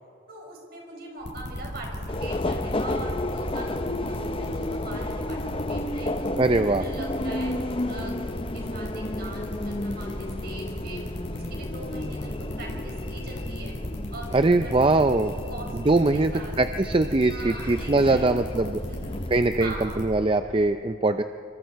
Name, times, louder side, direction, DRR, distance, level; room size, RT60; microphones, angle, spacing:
voice 1, 0.3-5.4 5.7-11.0 11.3-13.7 14.1-15.0 15.5-16.5 17.3-18.3 18.7-19.2 19.6-20.0, right 2 dB, 50° right, 0 dB, 5.2 m, -42 dB
sound 1, 1.2-20.0, equal, 60° left, 6.3 m, -36 dB
Subway metro underground, 2.1-19.3, left 1 dB, 25° left, 0.7 m, -33 dB
voice 2, 6.4-6.8 14.3-15.3 15.7-18.8 19.3-21.2, right 2 dB, 25° right, 9 dB, 0.5 m, -22 dB
26.5 x 24.5 x 4.7 m, 2.7 s
head